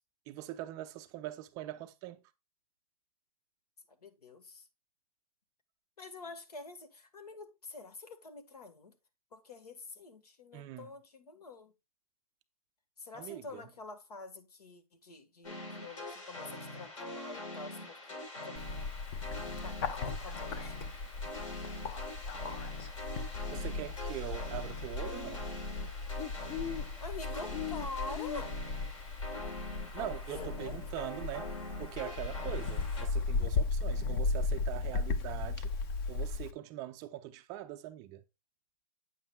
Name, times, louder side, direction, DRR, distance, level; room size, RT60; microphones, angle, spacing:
voice 1, 0.3-2.3 10.5-10.9 13.1-13.7 23.5-25.5 29.9-35.7 36.1-38.2, right 13 dB, 20° right, 0.3 m, -42 dB
voice 2, 3.9-4.7 6.0-8.9 9.3-11.7 13.0-18.6 19.6-20.8 27.0-28.7 30.3-30.8, left 3 dB, 85° left, 1.6 m, -47 dB
sound 1, 15.4-33.1, left 1 dB, 60° left, 3.9 m, -44 dB
Bird, 18.6-36.5, left 4 dB, 35° left, 0.8 m, -36 dB
8.8 x 7.0 x 2.3 m
hypercardioid pair, 145°, 19 cm